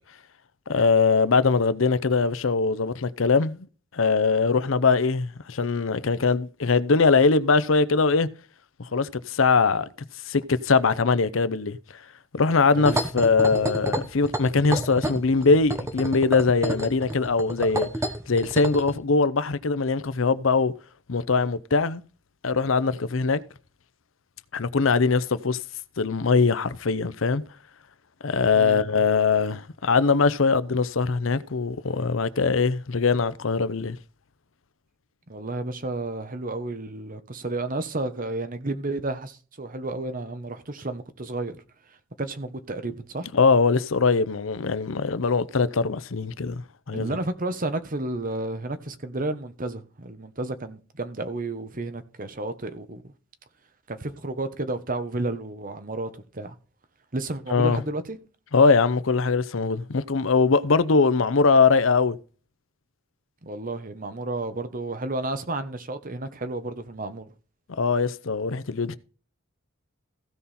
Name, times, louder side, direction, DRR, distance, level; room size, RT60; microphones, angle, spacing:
voice 1, 0.7-3.7 3.9-8.3 8.8-9.9 10.3-11.8 12.3-17.9 18.3-20.7 21.1-22.0 22.4-23.4 24.5-25.6 26.0-27.4 28.2-34.0 43.3-46.6 46.9-47.2 57.5-57.8 58.5-62.2 67.8-69.0, left 4 dB, 75° left, 0.7 m, -22 dB
sound 1, 12.8-18.9, right 1 dB, 15° right, 1.2 m, -29 dB
voice 2, 35.3-41.6 42.2-43.3 46.9-53.1 53.9-56.5 57.1-58.2 63.4-67.3, right 2 dB, 45° right, 1.2 m, -32 dB
15.5 x 5.4 x 4.3 m
head